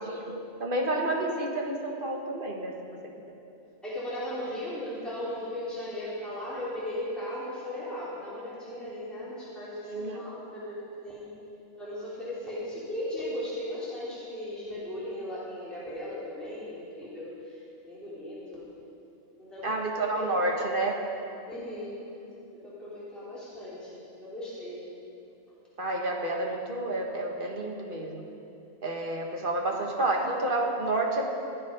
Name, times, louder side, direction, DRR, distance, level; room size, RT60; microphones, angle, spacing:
voice 1, 0.0-2.7 9.8-10.2 19.6-21.0 25.8-28.2 28.8-31.4, right 2 dB, 45° right, 0 dB, 1.7 m, -30 dB
voice 2, 3.8-11.3 11.8-18.7 19.4-19.8 20.1-20.5 21.5-22.0 22.5-24.8, left 1 dB, ahead, -10 dB, 3.6 m, -37 dB
17.5 x 9.0 x 5.3 m, 2.7 s
omnidirectional pair, 1.3 m